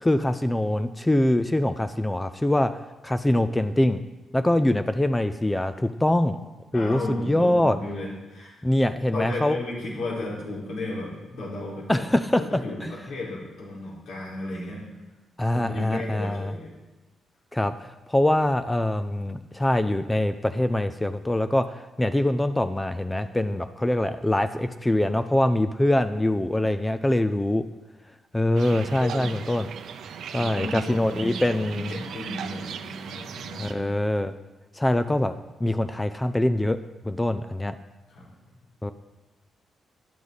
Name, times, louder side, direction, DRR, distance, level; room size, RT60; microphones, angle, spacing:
voice 1, 0.0-2.7 3.0-4.0 4.3-6.4 6.7-7.8 8.6-9.6 11.9-12.4 12.8-12.9 15.4-16.5 17.5-27.6 28.3-29.7 30.3-31.9 33.6-34.3 34.8-35.4 35.6-36.8 37.0-37.7 38.8-38.9, left 1 dB, 10° left, 11 dB, 0.4 m, -24 dB
voice 2, 6.7-8.6 9.1-12.1 12.5-14.8 15.5-16.7 28.8-29.4 30.3-33.9 38.1-38.3, left 2 dB, 70° left, -5 dB, 4.5 m, -34 dB
sound 1, 28.6-33.7, right 8 dB, 70° right, 0.7 m, -37 dB
13.5 x 11.0 x 4.1 m, 1.1 s
wide cardioid pair, 165°, 0 cm